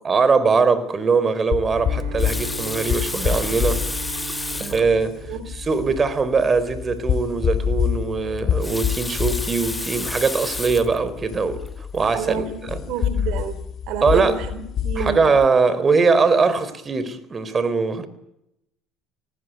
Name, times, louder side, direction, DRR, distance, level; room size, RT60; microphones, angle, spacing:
voice 1, 0.0-3.8 4.6-5.1 5.5-11.6 11.9-12.8 14.0-14.4 15.0-18.1, right 4 dB, 30° right, 4.1 m, -21 dB
sound 1, 1.5-15.5, left 8 dB, 50° left, 2.7 m, -27 dB
Bowed string instrument, 1.7-6.4, right 10 dB, 85° right, 4.4 m, -39 dB
Water tap faucet, 2.0-4.9 5.7-5.8 6.1-6.2 8.4-11.0 11.7-11.9, left 2 dB, 15° left, 1.3 m, -31 dB
voice 2, 12.1-15.3, right 7 dB, 65° right, 3.6 m, -29 dB
27.0 x 20.0 x 9.3 m
supercardioid pair, 80°, 0 cm